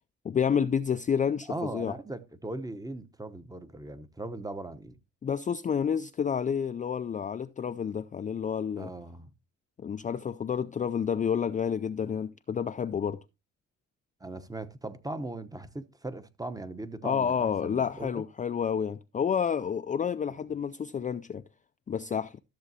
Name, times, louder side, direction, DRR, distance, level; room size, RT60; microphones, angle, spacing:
voice 1, 0.2-1.9 5.2-8.9 9.8-13.2 17.0-21.4 21.9-22.4, left 7 dB, 25° left, 0.4 m, -29 dB
voice 2, 1.5-5.0 8.8-9.3 14.2-18.2 20.4-20.5, right 2 dB, 10° right, 0.8 m, -39 dB
13.5 x 7.0 x 2.7 m
cardioid pair, 90°, 30 cm